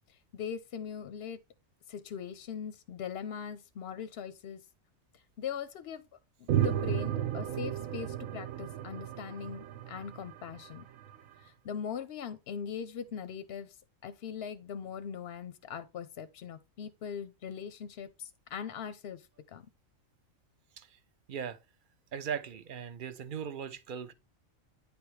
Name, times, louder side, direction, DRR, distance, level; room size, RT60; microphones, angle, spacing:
voice 1, 0.1-1.4 1.9-4.6 5.4-6.0 6.4-10.9 11.4-13.8 14.0-19.7, left 7 dB, 60° left, 0.7 m, -41 dB
sound 1, 6.5-11.2, right 10 dB, 85° right, 1.1 m, -33 dB
voice 2, 22.1-24.1, right 7 dB, 50° right, 0.7 m, -38 dB
9.4 x 3.5 x 4.6 m
omnidirectional pair, 1.4 m